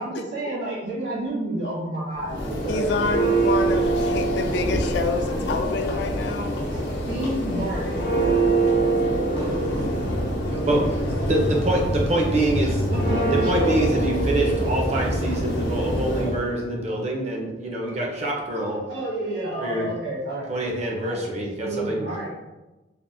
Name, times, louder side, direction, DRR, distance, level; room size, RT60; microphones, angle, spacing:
voice 1, 0.0-3.0 6.7-8.0 10.5-10.8 12.9-13.8 15.1-15.3 16.2-16.3 18.9-21.3 21.6-22.3, right 2 dB, 70° right, -7 dB, 1.4 m, -30 dB
Church bell, 2.2-16.4, right 2 dB, 85° left, 0.7 m, -24 dB
voice 2, 2.7-6.6, left 3 dB, 65° left, 6 dB, 0.3 m, -28 dB
voice 3, 11.3-12.9 13.3-18.8 19.6-19.9 20.5-22.1, right 1 dB, 40° right, -1 dB, 0.6 m, -25 dB
3.3 x 2.1 x 2.6 m, 1.1 s
head